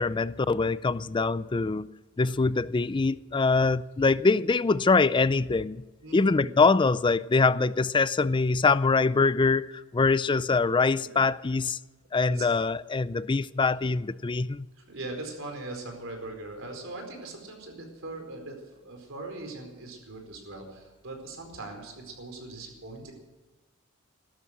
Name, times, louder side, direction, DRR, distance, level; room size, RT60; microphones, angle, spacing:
voice 1, 0.0-1.9 2.2-5.8 6.1-11.8 12.1-14.7, left 4 dB, 20° left, 0.4 m, -24 dB
voice 2, 6.0-6.5 11.0-11.2 12.2-12.5 14.8-23.1, right 2 dB, 65° right, 4.6 m, -40 dB
16.5 x 12.5 x 6.2 m
head